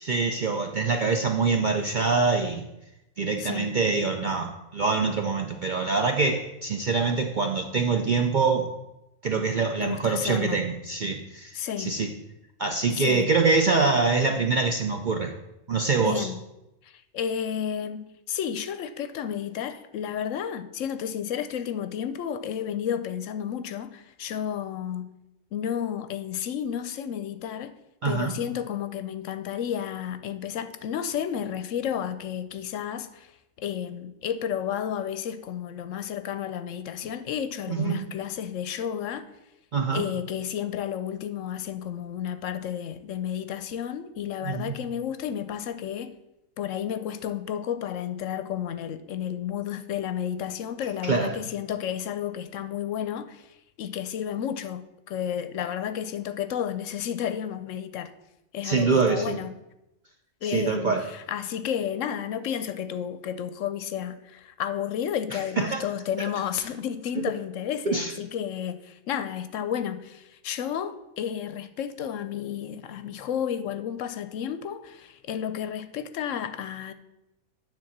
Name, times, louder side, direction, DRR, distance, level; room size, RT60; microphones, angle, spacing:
voice 1, 0.0-2.6 3.2-8.7 9.2-12.1 12.6-15.3 15.7-16.3 28.0-28.3 37.7-38.1 39.7-40.0 44.4-44.7 51.0-51.4 58.6-59.4 60.4-61.0 65.3-65.8 67.2-67.3 67.9-68.1, right 4 dB, 55° right, 0.5 m, -25 dB
voice 2, 3.4-3.7 9.8-10.6 11.5-12.0 12.9-13.3 16.0-16.4 16.8-25.1 25.5-27.7 28.0-33.3 33.6-39.3 39.9-46.1 46.6-58.1 58.5-59.5 60.4-76.9, left 9 dB, 70° left, 0.9 m, -32 dB
9.8 x 3.8 x 7.2 m
omnidirectional pair, 1.5 m